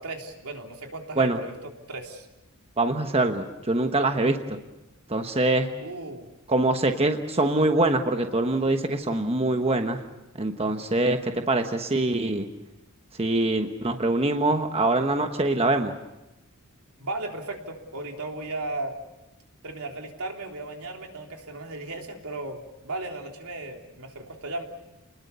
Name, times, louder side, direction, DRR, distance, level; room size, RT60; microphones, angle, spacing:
voice 1, 0.0-2.3 5.8-6.3 10.6-11.0 17.0-19.0 19.6-24.6, right 2 dB, 80° right, 2 dB, 3.4 m, -36 dB
voice 2, 2.8-4.4 5.1-5.7 6.5-10.0 10.4-12.5 13.2-15.9, right 2 dB, 25° right, 6 dB, 1.2 m, -24 dB
30.0 x 20.5 x 6.9 m, 0.94 s
head